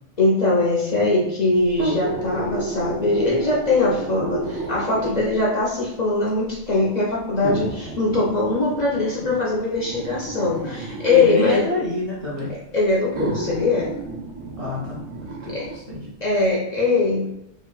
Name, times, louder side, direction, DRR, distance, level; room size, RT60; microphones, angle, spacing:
voice 1, 0.2-11.7 12.5-13.9 15.5-15.7 16.2-17.3, left 3 dB, 55° left, -5 dB, 0.5 m, -21 dB
sound 1, 1.7-5.4 6.3-6.4 7.4-11.4 12.4-12.5 13.1-15.8 16.2-16.3, right 3 dB, 80° right, 1.0 m, -31 dB
voice 2, 11.1-12.5 14.6-16.1, left 1 dB, 40° right, -7 dB, 0.5 m, -28 dB
2.8 x 2.3 x 2.2 m, 0.82 s
omnidirectional pair, 1.3 m